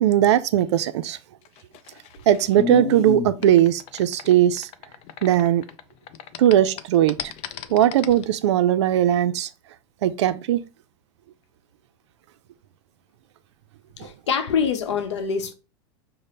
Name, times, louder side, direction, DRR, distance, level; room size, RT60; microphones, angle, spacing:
voice 1, 0.0-1.2 2.3-4.7 5.2-5.7 6.4-7.2 7.7-9.5 10.0-10.6 14.0-14.1, right 11 dB, 80° right, 0.4 m, -19 dB
sound 1, 1.5-5.8 6.1-8.2, left 9 dB, 45° left, 0.4 m, -33 dB
voice 2, 14.0-15.5, left 6 dB, 90° left, 0.8 m, -25 dB
5.0 x 2.1 x 4.1 m
supercardioid pair, 120°, 14 cm